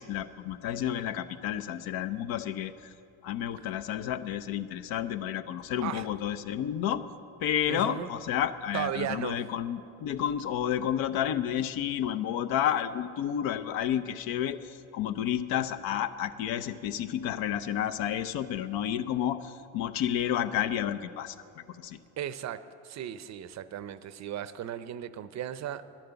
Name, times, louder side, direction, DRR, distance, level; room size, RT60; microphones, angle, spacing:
voice 1, 0.0-2.9 3.2-7.1 7.4-22.0, left 10 dB, 65° left, 12 dB, 0.7 m, -31 dB
voice 2, 7.7-8.1 8.7-9.4 22.2-25.8, right 10 dB, 45° right, 14 dB, 0.6 m, -36 dB
11.5 x 10.5 x 7.0 m, 2.6 s
supercardioid pair, 90°, 39 cm